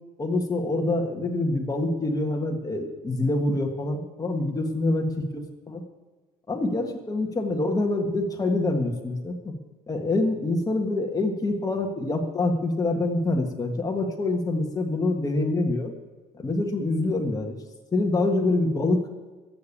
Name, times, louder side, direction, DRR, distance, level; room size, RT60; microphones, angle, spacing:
voice 1, 0.2-5.1 5.3-5.8 6.5-9.5 9.9-15.9 16.3-17.6 17.9-19.0, left 2 dB, 20° left, 2 dB, 1.6 m, -26 dB
14.5 x 7.0 x 8.5 m, 1.3 s
cardioid pair, 110°, 17 cm